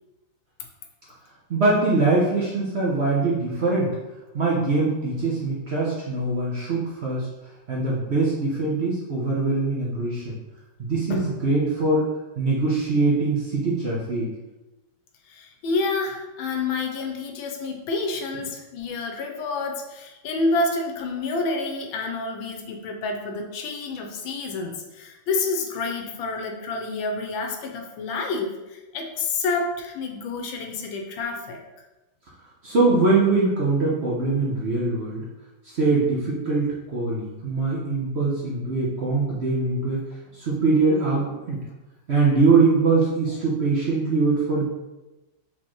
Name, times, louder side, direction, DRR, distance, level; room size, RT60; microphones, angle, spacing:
voice 1, 1.5-3.9 4.3-7.3 7.7-10.4 10.8-12.1 12.4-14.3 32.6-35.2 35.7-40.0 40.3-41.6 42.1-44.7, right 3 dB, 65° right, -5 dB, 0.6 m, -22 dB
voice 2, 15.3-31.6, left 3 dB, 80° left, 3 dB, 1.4 m, -28 dB
4.3 x 3.6 x 3.0 m, 1.1 s
omnidirectional pair, 2.2 m